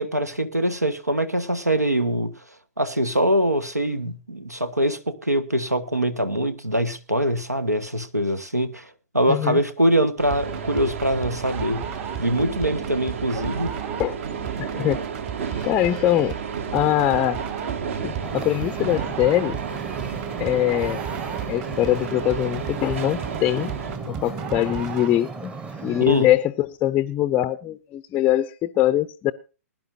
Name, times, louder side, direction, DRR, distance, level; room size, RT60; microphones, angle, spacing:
voice 1, 0.0-2.3 2.8-11.9 12.2-13.7 26.0-26.3, right 1 dB, 90° right, 1.4 m, -23 dB
voice 2, 9.3-9.6 14.0-14.2 14.6-15.0 15.5-16.4 16.7-17.4 18.0-19.6 20.4-21.0 21.5-23.7 24.1-25.5 25.8-29.3, left 13 dB, 20° left, 0.5 m, -22 dB
sound 1, 10.2-24.0, right 6 dB, 50° right, 1.3 m, -32 dB
sound 2, 10.3-25.3, right 8 dB, 30° right, 1.6 m, -35 dB
Wind / Ocean, 18.2-26.1, right 3 dB, 10° right, 0.9 m, -37 dB
20.5 x 11.0 x 2.7 m
figure-of-eight pair, 120°, 9 cm